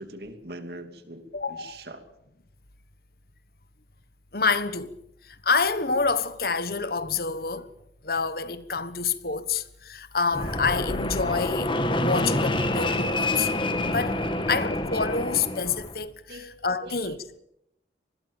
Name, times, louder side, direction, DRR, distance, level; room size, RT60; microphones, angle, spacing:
voice 1, 0.0-2.1 16.3-16.5 16.8-17.2, right 1 dB, 60° right, 2.8 m, -41 dB
voice 2, 1.3-1.8 4.3-4.9 5.4-7.7 8.0-11.7 12.0-13.5 13.9-14.2 14.5-17.1, left 5 dB, 55° left, 1.4 m, -27 dB
Fixed-wing aircraft airplane, 10.3-15.9, left 1 dB, 25° left, 2.2 m, -27 dB
26.0 x 20.5 x 7.3 m
head